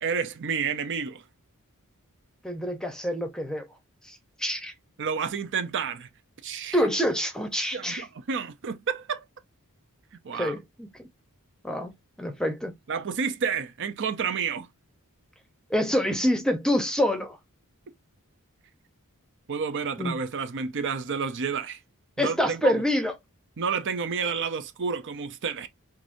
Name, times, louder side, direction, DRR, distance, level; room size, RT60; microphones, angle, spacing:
voice 1, 0.0-1.2 5.0-6.1 6.4-6.8 7.7-9.2 10.2-10.5 12.9-14.7 19.5-21.8 22.2-22.8 23.6-25.7, right 6 dB, 55° right, 0.6 m, -30 dB
voice 2, 2.4-3.7 4.1-4.7 6.7-8.1 10.3-11.1 11.6-11.9 12.2-12.7 15.7-17.4 20.0-20.2 22.2-23.1, equal, 5° left, 0.7 m, -26 dB
4.7 x 2.6 x 2.6 m
head